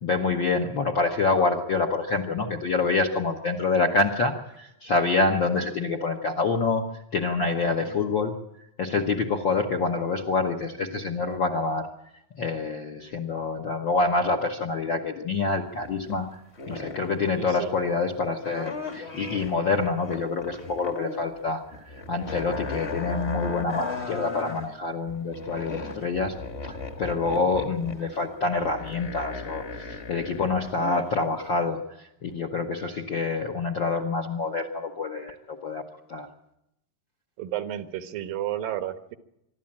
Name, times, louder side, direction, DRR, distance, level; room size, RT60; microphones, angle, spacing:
voice 1, 0.0-11.9 12.4-26.3 26.6-35.8 36.1-36.3, left 3 dB, 60° left, 4 dB, 1.2 m, -27 dB
sound 1, 15.7-16.2 16.6-17.2 18.4-21.2 21.5-24.7 25.1-31.1 31.5-31.6, left 3 dB, 35° left, 1.1 m, -36 dB
voice 2, 17.4-17.8 27.2-27.5 37.4-39.2, right 12 dB, 80° right, 9 dB, 2.9 m, -33 dB
25.0 x 12.5 x 8.7 m, 0.83 s
omnidirectional pair, 3.9 m